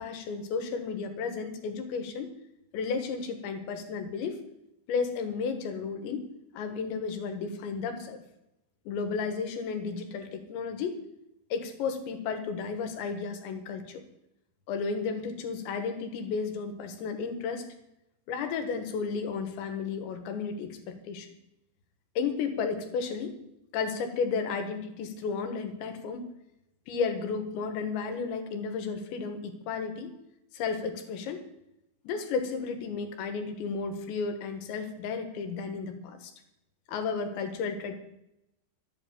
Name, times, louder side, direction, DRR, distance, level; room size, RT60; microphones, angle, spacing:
voice 1, 0.0-2.3 2.7-4.4 4.9-6.3 6.5-8.2 8.9-11.0 11.5-14.0 14.7-17.7 18.3-21.3 22.2-23.4 23.7-26.3 26.9-30.1 30.5-31.5 32.1-36.3 36.9-37.9, left 5 dB, 80° left, 7 dB, 3.7 m, -33 dB
12.0 x 8.6 x 8.7 m, 0.85 s
omnidirectional pair, 5.1 m